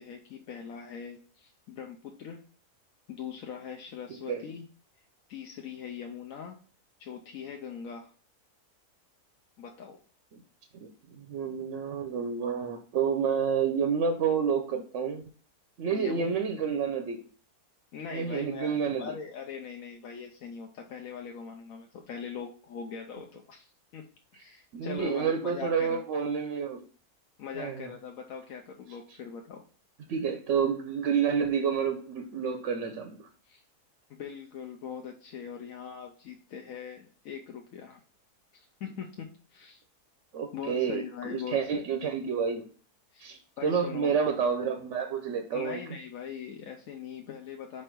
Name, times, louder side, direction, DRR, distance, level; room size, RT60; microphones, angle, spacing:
voice 1, 0.0-2.5 3.1-4.6 5.3-6.6 7.0-8.1 9.6-10.0 15.9-16.4 17.9-24.1 24.3-26.0 27.4-29.6 33.4-33.6 34.1-38.0 38.5-39.8 40.5-41.9 43.1-43.3 43.6-44.2 45.5-47.8, left 7 dB, 65° left, 2 dB, 1.0 m, -41 dB
voice 2, 10.8-15.2 15.8-17.2 18.1-19.2 24.7-26.8 27.6-27.9 30.1-33.2 40.3-42.7 43.2-45.8, right 6 dB, 60° right, 6 dB, 0.9 m, -29 dB
5.0 x 4.3 x 4.5 m, 0.40 s
omnidirectional pair, 1.7 m